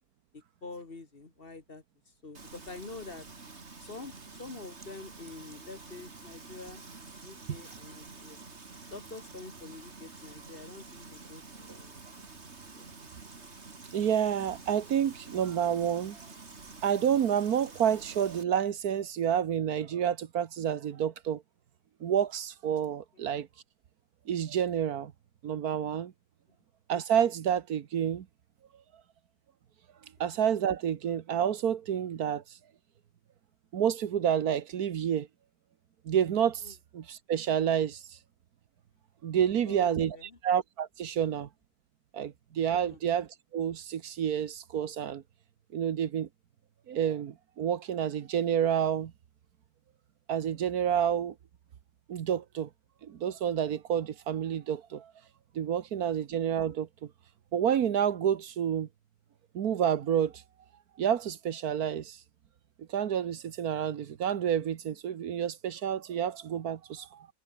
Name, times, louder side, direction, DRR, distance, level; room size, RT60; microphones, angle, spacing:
voice 1, 0.3-3.3 3.8-6.8 7.2-8.4 8.9-12.3 12.7-12.9 23.1-23.2 36.6-36.7 39.6-40.4 42.8-43.0, left 3 dB, 35° left, 2.1 m, -46 dB
Frying (food), 2.3-18.4, right 3 dB, 45° right, 2.9 m, -48 dB
voice 2, 13.9-16.2 16.8-21.4 22.0-23.5 24.3-25.1 25.4-26.1 26.9-28.3 30.2-32.4 33.7-35.3 36.0-38.2 39.2-40.2 40.4-41.5 42.1-45.2 45.7-46.3 46.9-49.1 50.3-51.3 52.1-52.7 53.0-55.1 55.5-56.9 57.5-58.9 59.5-60.4 61.0-62.2 62.9-67.3, right 9 dB, 75° right, 1.5 m, -29 dB
omnidirectional pair, 1.6 m